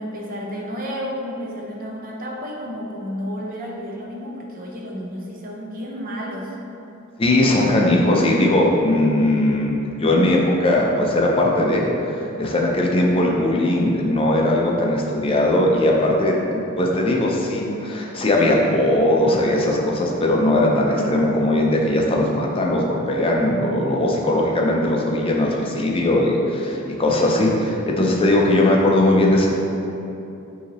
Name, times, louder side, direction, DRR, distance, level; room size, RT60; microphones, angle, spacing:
voice 1, 0.0-6.6, equal, 40° right, -1 dB, 0.5 m, -31 dB
voice 2, 7.2-29.6, left 1 dB, 25° left, -1 dB, 0.5 m, -19 dB
5.5 x 2.8 x 3.0 m, 2.8 s
head